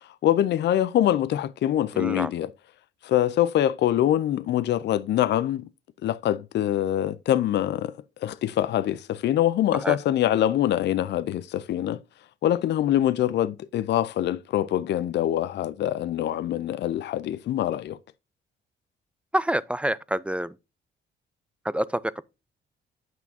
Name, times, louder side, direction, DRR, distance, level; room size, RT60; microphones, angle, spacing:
voice 1, 0.1-2.5 3.0-5.7 6.0-12.0 12.4-18.0, left 12 dB, 60° left, 0.5 m, -24 dB
voice 2, 1.9-2.3 9.8-10.0 19.3-20.5 21.6-22.2, right 1 dB, 5° right, 0.3 m, -27 dB
9.0 x 6.0 x 2.7 m
cardioid pair, 90°, 20 cm